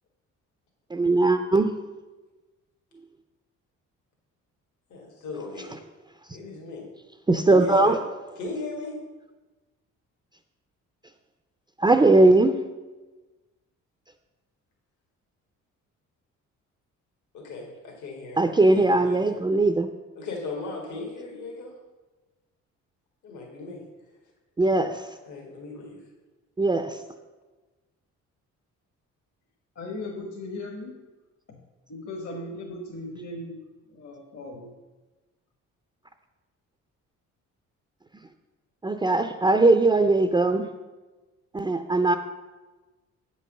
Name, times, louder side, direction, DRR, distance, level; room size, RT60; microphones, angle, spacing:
voice 1, 0.9-1.7 5.7-5.8 7.3-8.0 11.8-12.6 18.4-19.9 24.6-25.2 26.6-27.0 38.8-40.7 41.5-42.2, right 2 dB, 15° right, 7 dB, 0.5 m, -20 dB
voice 2, 4.9-5.8 6.3-6.9 7.5-8.0 8.4-9.0 17.3-19.3 20.2-21.7 23.2-23.8 25.3-26.0, left 3 dB, 75° left, 0 dB, 1.9 m, -36 dB
voice 3, 29.7-31.0 31.5-31.6 31.9-33.6 33.9-34.7, left 2 dB, 55° left, 0 dB, 1.4 m, -37 dB
7.9 x 5.4 x 6.5 m, 1.2 s
cardioid pair, 90°, 30 cm